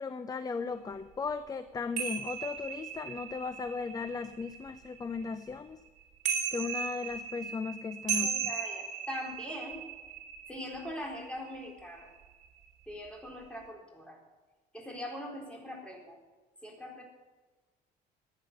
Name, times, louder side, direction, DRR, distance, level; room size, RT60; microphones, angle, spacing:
voice 1, 0.0-5.8 6.5-8.5, left 5 dB, 20° left, 11 dB, 0.6 m, -36 dB
sound 1, 2.0-5.5 6.0-12.0 12.3-12.6, right 7 dB, 45° right, 3.9 m, -37 dB
voice 2, 8.2-9.8 10.5-12.1 12.9-14.2 14.7-16.2 16.6-17.0, left 1 dB, 5° left, -1 dB, 4.1 m, -42 dB
14.5 x 9.9 x 6.8 m, 1.3 s
cardioid pair, 110°, 17 cm